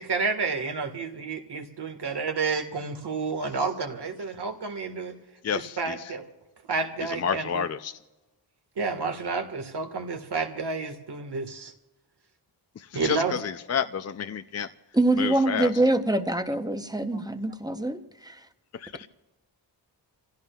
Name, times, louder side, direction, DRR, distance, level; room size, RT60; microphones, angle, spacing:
voice 1, 0.0-5.1 5.8-6.2 6.7-7.4 8.8-11.7 12.9-13.3, right 4 dB, 70° right, 6 dB, 1.7 m, -30 dB
voice 2, 5.4-6.2 7.0-7.9 12.8-14.7 15.2-15.8 18.7-19.1, left 7 dB, 40° left, 10 dB, 0.4 m, -30 dB
voice 3, 14.9-18.4, right 2 dB, 10° right, 8 dB, 0.7 m, -25 dB
28.5 x 16.0 x 2.3 m, 1.1 s
wide cardioid pair, 165°, 42 cm